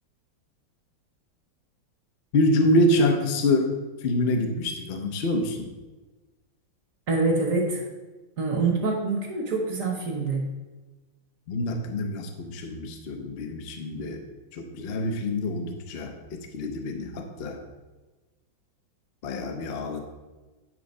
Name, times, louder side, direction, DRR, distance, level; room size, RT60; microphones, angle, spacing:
voice 1, 2.3-5.7 11.5-14.2 14.5-16.1 16.5-17.6 19.2-20.0, left 1 dB, 70° left, 4 dB, 0.5 m, -26 dB
voice 2, 7.1-7.8 8.4-10.4, right 3 dB, 50° right, 1 dB, 1.2 m, -25 dB
9.2 x 3.8 x 5.3 m, 1.2 s
omnidirectional pair, 2.3 m